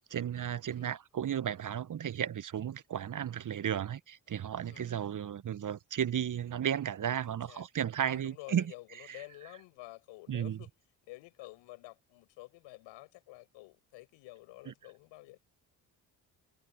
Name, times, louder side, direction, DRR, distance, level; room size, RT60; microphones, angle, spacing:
voice 1, 0.1-8.7 10.3-10.6 14.7-14.8, right 9 dB, 45° right, 0.9 m, -34 dB
voice 2, 4.7-5.1 7.3-7.7 8.0-10.8 11.0-15.4, left 20 dB, 85° left, 5.6 m, -51 dB
hypercardioid pair, 45°, 44 cm